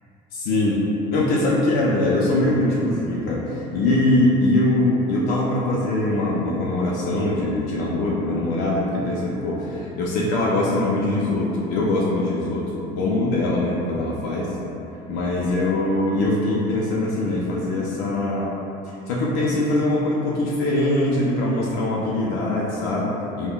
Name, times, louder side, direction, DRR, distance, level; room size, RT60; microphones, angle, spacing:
voice 1, 0.3-0.8 1.1-12.7 13.0-14.5 15.1-18.5 19.1-23.5, left 2 dB, 65° left, -4 dB, 0.4 m, -22 dB
5.2 x 2.1 x 2.2 m, 2.9 s
cardioid pair, 175°, 17 cm